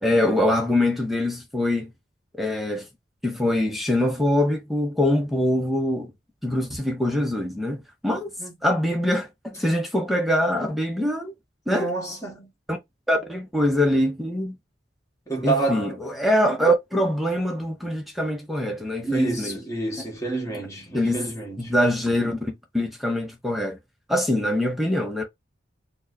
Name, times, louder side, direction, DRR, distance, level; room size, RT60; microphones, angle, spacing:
voice 1, 0.0-1.9 2.4-2.9 3.2-6.1 6.4-8.3 8.6-11.3 11.7-11.9 12.7-12.8 13.1-14.6 15.4-19.6 20.9-21.3 21.6-23.8 24.1-25.2, left 1 dB, ahead, 0.7 m, -23 dB
voice 2, 11.7-12.5 15.3-16.0 19.0-21.7, right 3 dB, 15° left, 1.5 m, -28 dB
4.3 x 2.2 x 2.6 m
head